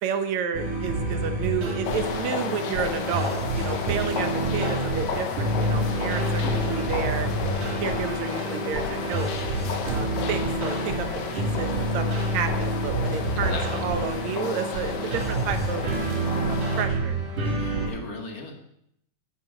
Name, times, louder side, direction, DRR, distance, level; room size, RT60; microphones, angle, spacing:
voice 1, 0.0-7.3 7.8-9.3 9.8-11.1 11.3-15.9 16.5-17.2, right 6 dB, 65° right, 8 dB, 2.4 m, -31 dB
sound 1, 0.5-17.9, right 1 dB, 85° right, 5.2 m, -28 dB
sound 2, 1.8-16.9, left 6 dB, 70° left, 2.4 m, -33 dB
voice 2, 13.3-13.8 17.6-18.6, left 3 dB, 35° left, 3 dB, 1.8 m, -36 dB
11.5 x 10.0 x 6.5 m, 0.73 s
omnidirectional pair, 3.6 m